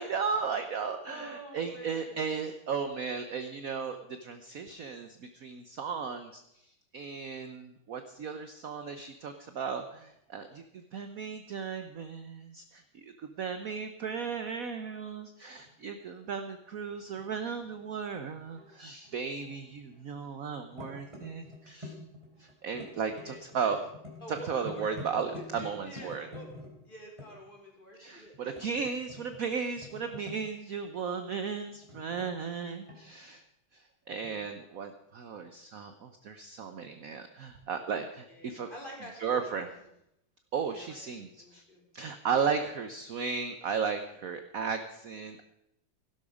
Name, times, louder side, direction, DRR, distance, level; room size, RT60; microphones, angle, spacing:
voice 1, 0.0-22.0 22.4-23.8 24.3-26.3 28.0-33.4 33.7-38.7 39.2-39.7 40.5-41.6 41.9-45.4, right 6 dB, 55° right, 8 dB, 1.0 m, -35 dB
voice 2, 1.0-2.2 22.9-23.7 24.2-25.0 25.3-26.5 26.8-28.4 38.3-39.6 40.6-41.0 41.4-41.8, equal, 20° left, -1 dB, 4.0 m, -47 dB
sound 1, 15.6-15.8 16.3-18.7 19.0-20.2 20.4-27.3 28.3-29.4 29.8-30.6 31.7-33.2 34.1-34.3, left 2 dB, 15° right, 3.5 m, -47 dB
16.0 x 12.0 x 5.0 m, 0.81 s
omnidirectional pair, 2.3 m